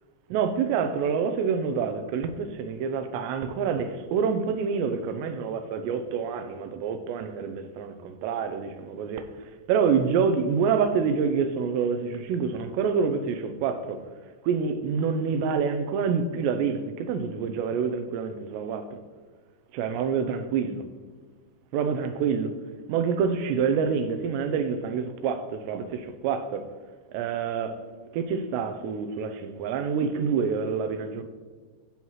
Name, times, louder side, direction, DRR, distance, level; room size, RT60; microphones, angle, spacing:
voice 1, 0.3-9.2 9.7-14.0 14.4-19.0 19.7-20.8 21.7-22.6 22.9-26.7 27.1-27.8 28.1-31.2, right 6 dB, 85° right, 2.8 m, -27 dB
15.5 x 5.7 x 3.1 m
omnidirectional pair, 5.0 m